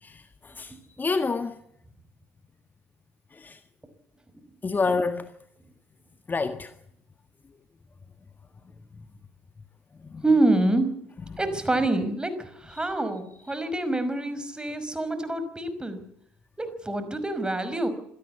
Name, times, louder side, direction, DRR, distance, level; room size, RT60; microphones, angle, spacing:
voice 1, 0.0-1.6 3.3-3.6 4.6-5.3 6.3-6.7 10.0-10.2 11.3-11.4, left 4 dB, 25° left, 1.6 m, -29 dB
voice 2, 10.2-10.9 11.4-16.0 16.6-17.9, right 2 dB, 10° right, 5.5 m, -26 dB
26.5 x 18.0 x 8.4 m
figure-of-eight pair, 55°, 7 cm